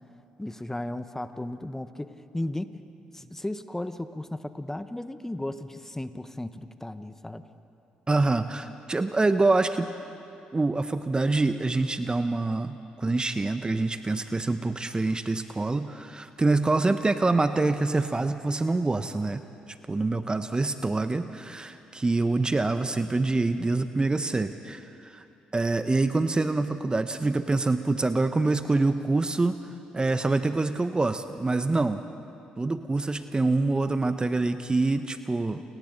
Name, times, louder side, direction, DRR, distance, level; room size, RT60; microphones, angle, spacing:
voice 1, 0.4-2.8 3.1-7.4, left 1 dB, 10° left, 11 dB, 1.2 m, -35 dB
voice 2, 8.1-9.9 10.5-19.4 19.7-25.2 25.5-29.6 29.9-32.0 32.6-35.6, right 3 dB, 25° right, 10 dB, 0.9 m, -26 dB
29.5 x 25.5 x 4.0 m, 2.7 s
hypercardioid pair, 45°, 4 cm